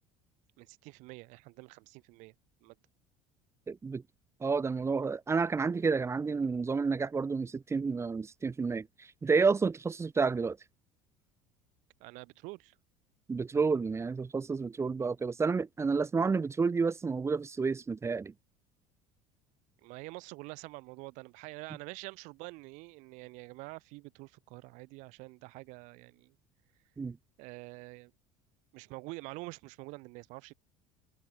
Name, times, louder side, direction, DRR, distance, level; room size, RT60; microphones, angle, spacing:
voice 1, 0.6-2.3 2.6-2.8 12.0-12.8 19.8-26.3 27.4-28.1 28.7-30.5, right 25 dB, 70° right, 3.9 m, -46 dB
voice 2, 3.7-4.0 4.4-8.9 9.2-10.6 13.3-18.3 27.0-27.2, right 4 dB, 20° right, 1.1 m, -30 dB
supercardioid pair, 95°, 13 cm